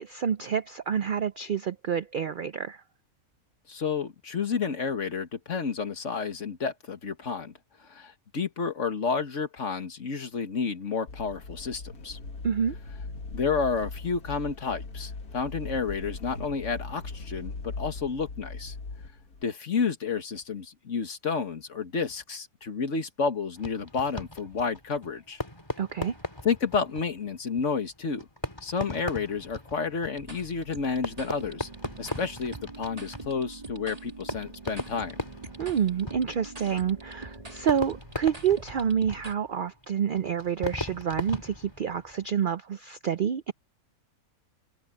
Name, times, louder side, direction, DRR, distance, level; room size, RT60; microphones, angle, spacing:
voice 1, 0.0-2.8 12.4-12.7 25.8-26.2 35.6-43.5, right 8 dB, 65° right, 0.5 m, -28 dB
voice 2, 3.7-7.5 7.8-12.2 13.3-18.8 19.4-25.4 26.4-28.3 28.6-31.7 32.0-35.2, left 5 dB, 55° left, 1.9 m, -30 dB
sound 1, 11.1-19.4, left 3 dB, 90° left, 2.3 m, -39 dB
Fireworks, 23.6-42.4, left 1 dB, 15° left, 2.4 m, -39 dB
sound 2, 30.1-39.3, right 3 dB, 25° right, 2.2 m, -44 dB
omnidirectional pair, 1.5 m